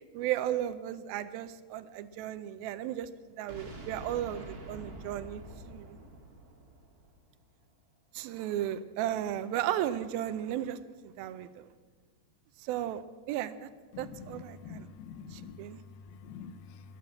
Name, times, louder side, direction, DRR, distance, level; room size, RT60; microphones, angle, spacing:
voice 1, 0.0-3.1 3.4-6.0 8.1-11.7 12.6-13.0 13.3-13.7 14.0-14.9 15.3-15.8, right 12 dB, 80° right, 13 dB, 2.3 m, -35 dB
sound 1, 3.5-7.4, right 1 dB, 60° right, 1.0 m, -47 dB
voice 2, 13.9-15.6 16.1-16.8, left 6 dB, 75° left, 10 dB, 2.6 m, -46 dB
21.0 x 7.6 x 8.6 m, 1.5 s
omnidirectional pair, 4.7 m